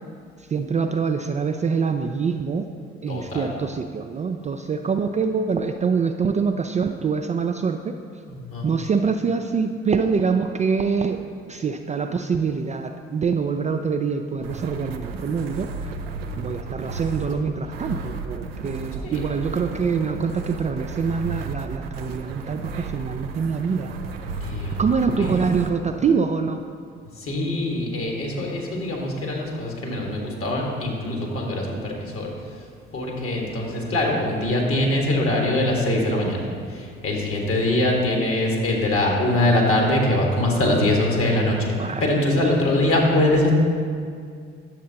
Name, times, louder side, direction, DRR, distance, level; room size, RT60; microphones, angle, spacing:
voice 1, 0.5-2.7 3.0-7.9 8.6-11.2 11.5-15.9 16.4-23.9 24.8-26.6 41.8-42.1 42.4-42.5, right 5 dB, 25° right, 5 dB, 0.4 m, -25 dB
voice 2, 3.1-3.6 8.3-8.7 19.0-19.2 24.4-24.8 25.2-25.3 27.2-32.3 32.9-41.7 42.0-43.6, left 1 dB, 45° left, 0 dB, 1.8 m, -23 dB
sound 1, 14.3-25.7, right 4 dB, 85° right, 0.5 m, -33 dB
10.0 x 7.3 x 2.8 m, 2.2 s
figure-of-eight pair, 45°, 30 cm